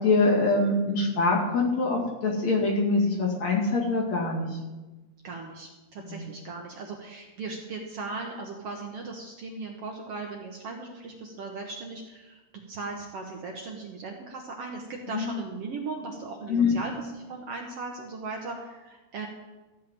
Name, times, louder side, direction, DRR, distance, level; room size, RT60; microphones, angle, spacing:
voice 1, 0.0-4.6 6.1-6.3 15.1-15.3 16.5-16.7, left 3 dB, 60° left, -2 dB, 3.5 m, -24 dB
voice 2, 5.2-12.4 12.7-19.3, right 3 dB, 60° right, 1 dB, 1.7 m, -38 dB
13.5 x 5.6 x 8.8 m, 1.2 s
omnidirectional pair, 3.7 m